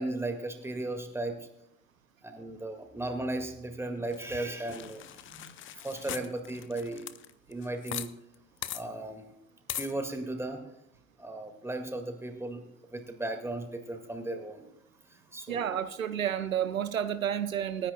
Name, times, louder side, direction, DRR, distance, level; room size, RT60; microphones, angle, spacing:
voice 1, 0.0-1.4 2.2-7.1 7.5-8.1 8.6-9.3 9.8-10.6 11.2-12.6 12.9-14.6 15.1-15.8, right 2 dB, 5° right, 5 dB, 1.9 m, -36 dB
sound 1, 4.1-8.1 8.3-8.4 8.6-8.8 9.7-9.9, left 12 dB, 30° left, 0.6 m, -40 dB
voice 2, 15.5-17.9, right 9 dB, 85° right, 12 dB, 0.6 m, -30 dB
26.5 x 10.0 x 2.3 m, 0.78 s
figure-of-eight pair, 65°, 40 cm